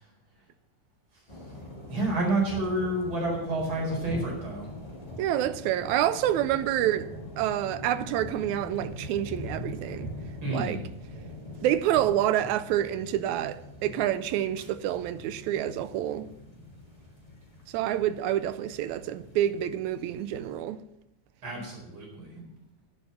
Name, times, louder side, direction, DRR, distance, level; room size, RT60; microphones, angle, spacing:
sound 1, 1.3-20.6, left 1 dB, 15° left, 2.1 m, -43 dB
voice 1, 1.9-4.7 10.4-10.8 21.4-22.3, right 2 dB, 45° right, 5.4 m, -29 dB
voice 2, 5.2-7.1 7.4-10.1 10.5-10.8 11.6-16.3 17.7-20.8, right 12 dB, 85° right, 2.0 m, -28 dB
11.0 x 9.6 x 5.8 m
omnidirectional pair, 3.3 m